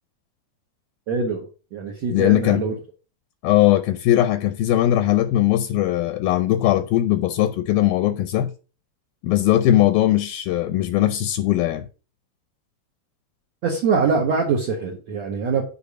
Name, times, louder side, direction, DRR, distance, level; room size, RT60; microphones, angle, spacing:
voice 1, 1.1-2.7 13.6-15.6, right 5 dB, 60° right, 2.0 m, -23 dB
voice 2, 2.1-2.6 3.4-8.5 9.2-11.9, left 13 dB, 80° left, 2.3 m, -19 dB
8.5 x 4.6 x 6.6 m
omnidirectional pair, 4.5 m